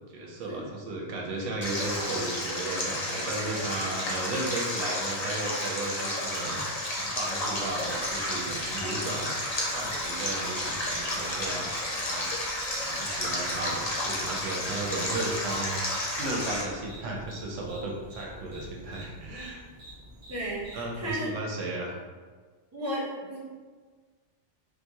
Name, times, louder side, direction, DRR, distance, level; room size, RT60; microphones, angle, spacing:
voice 1, 0.1-9.3 9.7-19.6 20.7-22.0, right 2 dB, 85° right, -1 dB, 1.0 m, -35 dB
Stream, 1.6-16.6, left 1 dB, 45° left, 0.6 m, -32 dB
sound 1, 6.2-21.1, equal, 50° right, 0.9 m, -49 dB
voice 2, 20.3-21.3 22.7-23.4, equal, 15° right, -7 dB, 0.6 m, -34 dB
3.8 x 2.1 x 2.8 m, 1.5 s
omnidirectional pair, 1.2 m